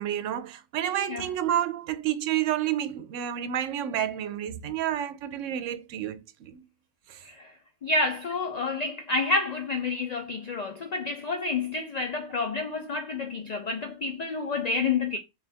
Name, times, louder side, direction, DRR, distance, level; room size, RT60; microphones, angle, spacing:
voice 1, 0.0-6.6 7.1-7.2, right 11 dB, 80° right, 0.9 m, -30 dB
voice 2, 7.8-15.2, left 3 dB, 85° left, 0.3 m, -29 dB
4.0 x 2.4 x 3.3 m
omnidirectional pair, 1.3 m